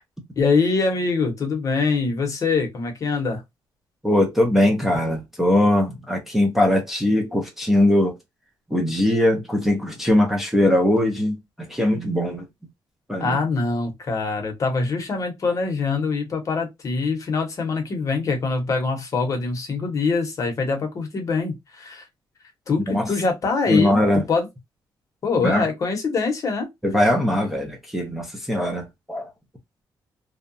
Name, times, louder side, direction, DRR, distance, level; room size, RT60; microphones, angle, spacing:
voice 1, 0.4-3.4 13.2-22.1 22.7-24.5 25.2-26.7, left 4 dB, 40° left, 0.8 m, -24 dB
voice 2, 4.0-8.2 8.7-12.4 13.1-13.4 22.9-23.1 23.7-24.2 25.4-25.7 26.8-29.3, left 1 dB, 5° right, 0.5 m, -21 dB
2.7 x 2.1 x 2.5 m
cardioid pair, 160°, 8 cm